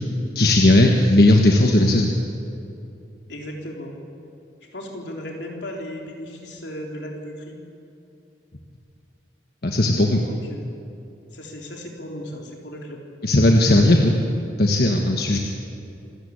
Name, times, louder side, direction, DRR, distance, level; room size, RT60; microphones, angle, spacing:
voice 1, 0.3-2.1 9.6-10.2 13.2-14.2 14.6-15.4, left 1 dB, 55° left, 2 dB, 1.4 m, -16 dB
voice 2, 3.3-3.9 4.7-7.6 10.2-10.7 11.3-13.0, equal, 80° left, 0 dB, 3.7 m, -35 dB
27.0 x 13.0 x 8.7 m, 2.7 s
head